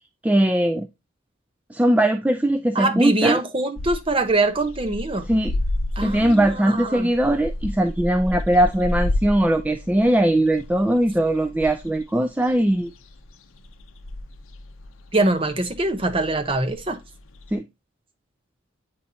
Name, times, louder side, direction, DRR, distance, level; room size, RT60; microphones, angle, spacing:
voice 1, 0.2-0.9 1.7-3.4 5.3-5.6 6.0-12.9 17.5-17.7, right 1 dB, 5° right, 0.3 m, -20 dB
voice 2, 2.7-5.3 6.0-7.1 15.1-17.0, right 2 dB, 25° right, 0.8 m, -23 dB
sound 1, 3.8-17.5, left 1 dB, 75° left, 0.6 m, -32 dB
8.6 x 4.1 x 2.7 m
head